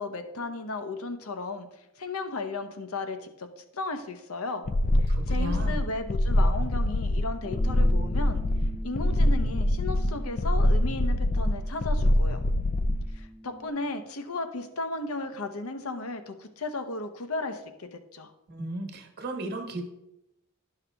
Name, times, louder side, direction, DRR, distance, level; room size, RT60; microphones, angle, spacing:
voice 1, 0.0-1.7 2.0-4.6 5.0-8.4 8.8-12.4 13.1-18.3, left 2 dB, 75° left, 8 dB, 0.9 m, -35 dB
sound 1, 4.7-13.1, left 1 dB, 35° left, 0.4 m, -24 dB
voice 2, 5.1-5.7 18.5-19.8, right 2 dB, 50° right, 4 dB, 1.3 m, -35 dB
Bass guitar, 7.4-13.7, equal, 10° right, 0.8 m, -45 dB
12.0 x 5.7 x 3.4 m, 0.89 s
head